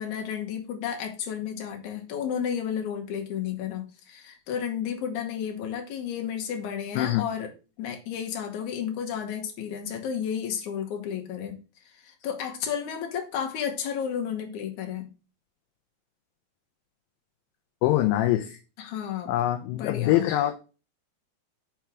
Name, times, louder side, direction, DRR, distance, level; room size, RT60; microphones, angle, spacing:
voice 1, 0.0-7.5 7.8-11.6 11.8-15.1 18.8-19.3 19.7-20.3, left 8 dB, 65° left, 3 dB, 2.3 m, -32 dB
voice 2, 17.8-18.6 19.3-20.5, left 14 dB, 80° left, 6 dB, 2.2 m, -24 dB
5.9 x 4.5 x 6.0 m, 0.33 s
omnidirectional pair, 4.3 m